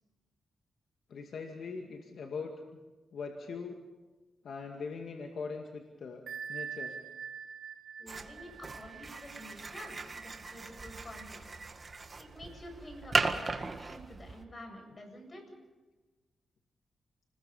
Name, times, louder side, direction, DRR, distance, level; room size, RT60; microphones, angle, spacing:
voice 1, 1.1-2.5 3.1-3.8 4.4-6.2 6.5-7.0, left 5 dB, 70° left, 2 dB, 2.3 m, -41 dB
Bell, 6.3-11.7, right 7 dB, 75° right, 1.2 m, -45 dB
voice 2, 8.0-11.4 12.2-15.4, left 1 dB, 35° left, 4 dB, 7.8 m, -48 dB
sound 1, 8.1-14.4, right 3 dB, 35° right, 1.8 m, -37 dB
29.5 x 21.0 x 5.6 m, 1.2 s
cardioid pair, 90°, 0 cm